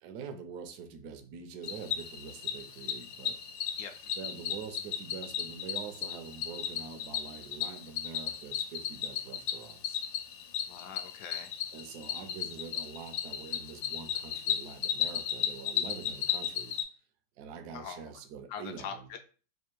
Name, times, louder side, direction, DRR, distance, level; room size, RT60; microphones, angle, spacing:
voice 1, 0.0-3.4 4.2-10.0 11.7-16.7 17.4-19.1, right 6 dB, 70° right, 1.0 m, -45 dB
Cricket, 1.6-16.8, left 9 dB, 85° left, 1.3 m, -35 dB
voice 2, 10.7-11.5 17.7-18.0 18.5-19.2, left 7 dB, 70° left, 1.0 m, -42 dB
3.5 x 2.5 x 4.4 m
omnidirectional pair, 2.0 m